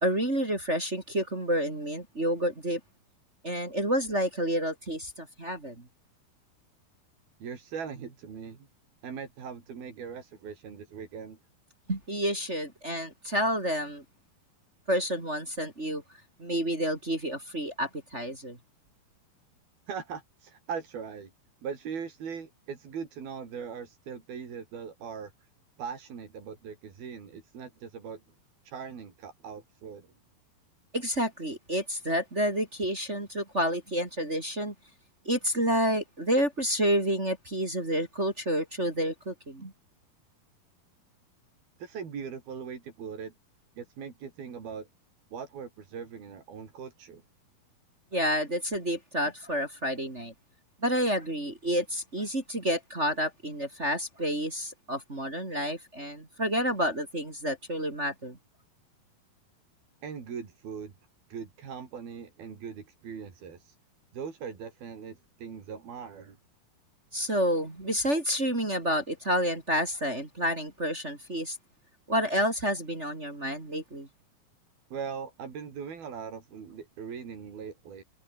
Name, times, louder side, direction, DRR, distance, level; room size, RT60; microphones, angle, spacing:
voice 1, 0.0-2.8 3.4-5.8 11.9-14.0 14.9-16.0 16.4-18.6 30.9-34.7 35.2-39.7 48.1-50.3 50.8-58.4 67.1-71.6 72.1-74.1, equal, 20° right, 3.4 m, -29 dB
voice 2, 7.4-8.7 9.0-11.4 19.9-21.3 21.6-25.3 25.8-28.2 28.6-30.1 41.8-43.3 43.8-44.9 45.3-47.2 60.0-60.9 61.3-63.8 64.1-66.4 74.9-78.0, right 6 dB, 85° right, 6.0 m, -40 dB
omnidirectional pair, 4.2 m